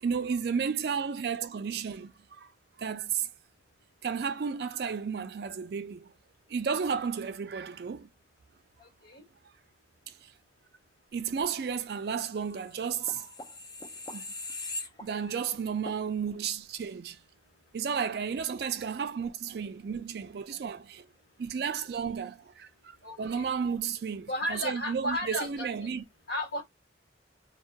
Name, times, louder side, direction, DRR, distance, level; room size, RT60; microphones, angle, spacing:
voice 1, 0.0-2.5 2.8-3.3 4.0-6.1 6.5-8.1 10.1-10.3 11.1-13.3 14.1-14.2 15.0-17.2 17.7-21.1 21.4-26.0, right 6 dB, 60° right, 0.4 m, -33 dB
voice 2, 8.8-9.2 23.0-23.4 24.3-25.7 26.3-26.6, left 1 dB, 65° left, 1.1 m, -34 dB
sound 1, 12.6-15.5 15.9-16.0, left 2 dB, 20° left, 0.3 m, -41 dB
2.2 x 2.2 x 2.7 m
head